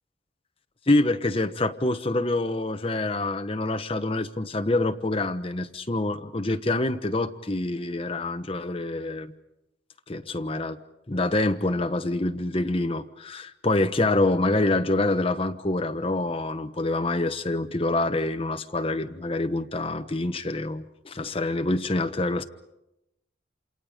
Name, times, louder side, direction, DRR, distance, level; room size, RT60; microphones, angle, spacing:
voice 1, 0.9-9.3 10.1-10.8 11.1-22.4, left 2 dB, 30° left, 7 dB, 1.0 m, -26 dB
28.5 x 27.5 x 5.1 m, 0.90 s
head